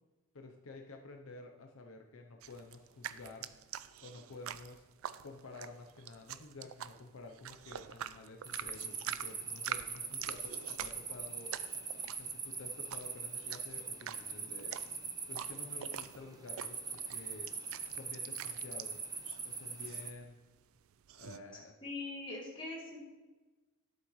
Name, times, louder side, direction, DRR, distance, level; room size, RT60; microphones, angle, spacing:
voice 1, 0.3-3.6 4.0-4.9 5.2-11.5 12.2-14.8 15.3-17.5 17.9-19.0 19.4-20.4 21.1-21.7, left 2 dB, 80° left, 3 dB, 0.7 m, -51 dB
sound 1, 2.4-21.4, right 10 dB, 75° right, 0.4 m, -46 dB
sound 2, 8.4-20.1, right 5 dB, 20° right, 0.6 m, -42 dB
voice 2, 21.8-23.0, left 2 dB, 25° left, -4 dB, 2.2 m, -42 dB
11.5 x 7.5 x 3.1 m, 1.2 s
head